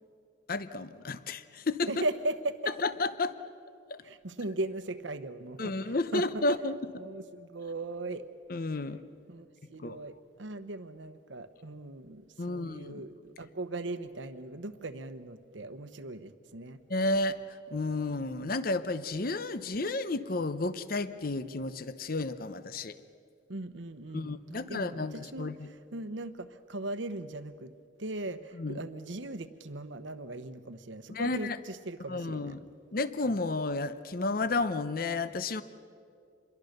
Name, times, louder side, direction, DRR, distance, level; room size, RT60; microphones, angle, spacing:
voice 1, 0.5-1.9 2.8-3.3 3.9-4.0 5.6-7.0 8.5-9.0 9.8-10.0 12.4-13.0 16.9-23.0 24.1-25.7 28.5-28.8 31.1-31.6 32.1-32.7 32.9-35.6, left 2 dB, 50° left, 13 dB, 0.8 m, -32 dB
voice 2, 1.9-2.7 4.0-5.6 5.8-6.4 7.0-8.2 9.3-16.8 23.5-25.5 25.9-27.7 28.0-32.6, right 2 dB, 80° right, 11 dB, 1.1 m, -38 dB
27.0 x 22.0 x 6.7 m, 2.5 s
head